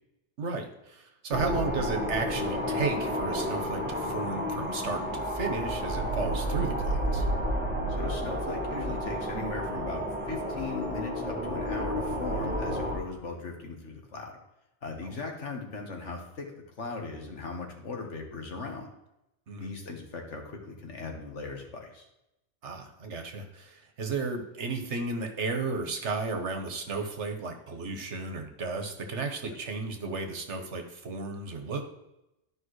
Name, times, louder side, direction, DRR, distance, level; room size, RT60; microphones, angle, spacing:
voice 1, 0.4-7.3 15.0-15.2 19.5-19.7 22.6-31.9, right 3 dB, 75° right, 5 dB, 1.4 m, -34 dB
sound 1, 1.3-13.0, equal, 10° right, 1.5 m, -31 dB
voice 2, 7.9-14.3 14.8-16.5 16.8-18.9 19.6-22.1 29.5-29.6, left 3 dB, 80° left, 2 dB, 1.7 m, -38 dB
12.0 x 5.3 x 3.2 m, 0.89 s
omnidirectional pair, 1.2 m